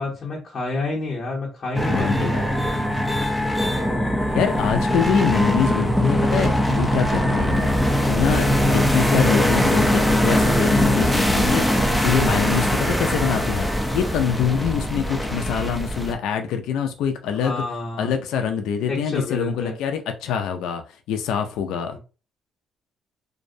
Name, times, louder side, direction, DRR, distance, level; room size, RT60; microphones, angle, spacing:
voice 1, 0.0-2.3 3.6-4.1 17.4-18.1 18.9-19.7 21.9-22.0, left 3 dB, 45° left, 0.8 m, -29 dB
sound 1, 1.7-16.1, equal, ahead, 0.5 m, -21 dB
voice 2, 1.9-2.5 4.3-13.7 13.9-17.6 18.0-20.8 21.1-22.0, left 7 dB, 85° left, 0.4 m, -25 dB
2.6 x 2.0 x 2.6 m
cardioid pair, 100°, 0 cm